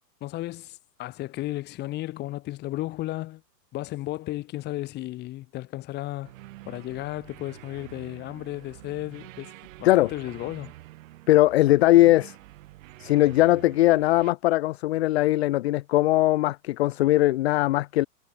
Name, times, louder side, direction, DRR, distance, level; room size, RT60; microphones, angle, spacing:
voice 1, 0.2-3.4 3.7-6.3 6.7-9.5 9.8-10.7, left 16 dB, 20° left, 1.1 m, -34 dB
sound 1, 6.2-14.3, right 17 dB, 50° right, 7.3 m, -47 dB
voice 2, 11.3-12.3 13.0-18.1, left 16 dB, 40° left, 0.5 m, -20 dB
hypercardioid pair, 135°, 49 cm